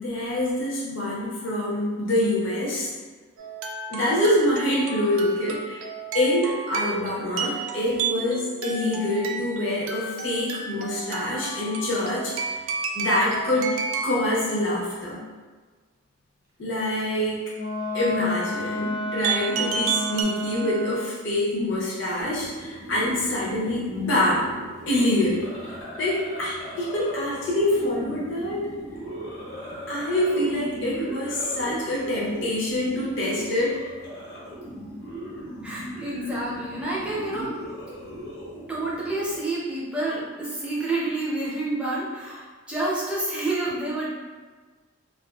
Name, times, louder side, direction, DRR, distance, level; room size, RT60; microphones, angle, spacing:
voice 1, 0.0-2.9 3.9-5.9 6.1-12.3 12.9-13.7 14.0-15.2 16.6-17.4 17.9-24.5 24.9-25.4 26.0-28.7 29.9-33.8, left 1 dB, 65° left, -6 dB, 0.7 m, -25 dB
sound 1, 3.4-14.3 19.2-20.2, right 5 dB, 80° right, 0.3 m, -32 dB
Wind instrument woodwind instrument, 17.5-21.2, equal, 40° right, 0.7 m, -30 dB
sound 2, 22.2-39.4, right 1 dB, 85° left, 1.2 m, -38 dB
voice 2, 35.6-37.6 38.7-44.1, right 2 dB, 5° right, -7 dB, 0.5 m, -29 dB
2.5 x 2.3 x 2.3 m, 1.4 s
head